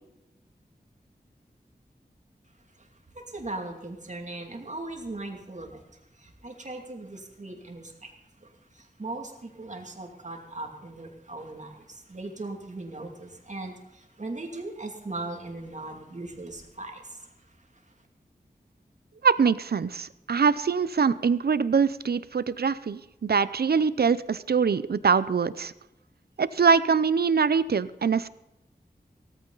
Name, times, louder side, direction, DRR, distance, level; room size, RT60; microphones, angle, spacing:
voice 1, 3.1-5.8 6.2-8.1 8.4-17.3, right 2 dB, 45° right, 2 dB, 2.5 m, -39 dB
voice 2, 19.2-25.7 26.4-28.3, right 6 dB, 75° right, 16 dB, 0.6 m, -23 dB
17.0 x 14.5 x 4.0 m, 0.94 s
wide cardioid pair, 85°, 16 cm